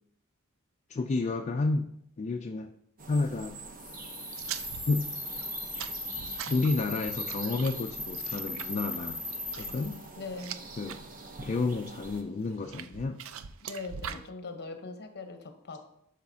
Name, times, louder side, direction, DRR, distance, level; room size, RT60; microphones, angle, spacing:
voice 1, 0.9-1.9 2.2-2.7 3.1-3.6 4.9-5.1 6.5-9.2 9.6-10.0 10.8-11.0 11.4-13.2 14.1-14.2, left 3 dB, 30° left, 5 dB, 0.3 m, -30 dB
sound 1, 3.0-12.2, right 3 dB, 40° right, 0.8 m, -47 dB
sound 2, 3.7-10.1, left 2 dB, ahead, 0.8 m, -38 dB
sound 3, 4.3-11.0 11.4-11.9 12.5-14.3, right 8 dB, 65° right, 0.4 m, -43 dB
voice 2, 9.5-10.6 13.6-15.8, left 3 dB, 50° left, 6 dB, 0.9 m, -42 dB
11.5 x 4.8 x 2.7 m, 0.75 s
head